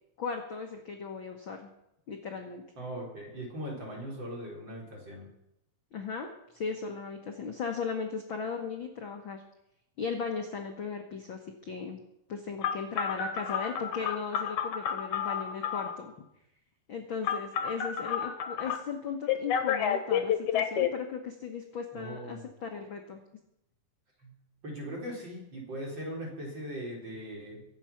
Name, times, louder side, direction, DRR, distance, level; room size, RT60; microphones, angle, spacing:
voice 1, 0.2-1.7 2.1-2.6 5.9-6.3 6.5-9.4 10.0-12.0 12.3-16.1 16.9-23.2, left 5 dB, 90° left, 3 dB, 1.1 m, -37 dB
voice 2, 2.8-5.3 21.9-22.5 24.2-24.3 24.6-27.7, equal, 30° right, -2 dB, 4.2 m, -40 dB
Telephone, 12.6-16.0 17.2-18.8 19.3-20.9, left 8 dB, 65° left, 2.2 m, -30 dB
24.0 x 8.0 x 5.8 m, 0.84 s
omnidirectional pair, 4.2 m